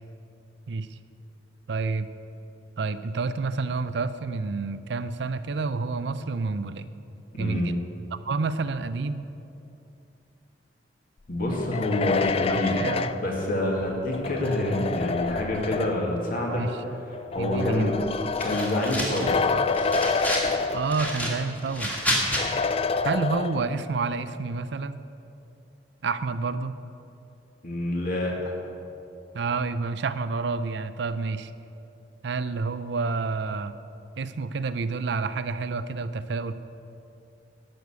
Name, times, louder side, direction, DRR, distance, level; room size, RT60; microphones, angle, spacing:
voice 1, 0.7-1.0 1.7-2.1 2.8-6.9 7.4-7.8 8.1-9.2 12.5-13.1 16.5-16.8 17.4-17.9 20.7-22.0 23.0-25.0 26.0-26.8 29.3-31.5 32.2-33.7 34.2-36.5, right 4 dB, 70° right, 13 dB, 0.5 m, -29 dB
voice 2, 7.3-7.7 11.3-12.8 13.2-16.6 17.1-17.9 18.4-19.4 27.6-28.5, left 1 dB, 55° left, -1 dB, 2.3 m, -27 dB
sound 1, 11.5-16.2 17.1-21.3 21.6-21.7 22.4-23.9, left 4 dB, 35° left, 0.4 m, -28 dB
sound 2, 18.4-19.4 19.7-20.5 20.9-22.4, equal, 10° left, 1.8 m, -29 dB
12.0 x 6.7 x 8.2 m, 2.7 s
head